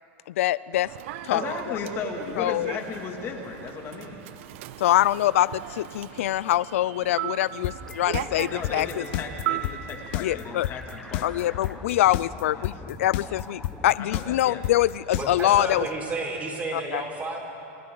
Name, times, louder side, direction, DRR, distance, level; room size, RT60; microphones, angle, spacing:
voice 1, 0.4-0.9 1.2-1.4 2.4-2.7 4.8-8.9 10.2-10.7 11.2-15.8 16.7-17.0, left 14 dB, 85° left, 19 dB, 0.4 m, -24 dB
Human voice / Subway metro underground, 0.7-10.2, right 13 dB, 70° right, 0.8 m, -37 dB
voice 2, 1.3-4.2 8.4-11.6 12.5-12.7 14.0-14.6, left 5 dB, 35° left, 2 dB, 2.6 m, -35 dB
sound 1, 7.6-15.6, left 15 dB, 60° left, 0.9 m, -30 dB
sound 2, 7.8-14.0, equal, 5° left, 1.3 m, -45 dB
voice 3, 15.1-17.4, right 2 dB, 20° right, 0 dB, 4.7 m, -31 dB
29.5 x 25.0 x 4.0 m, 2.7 s
supercardioid pair, 135°, 7 cm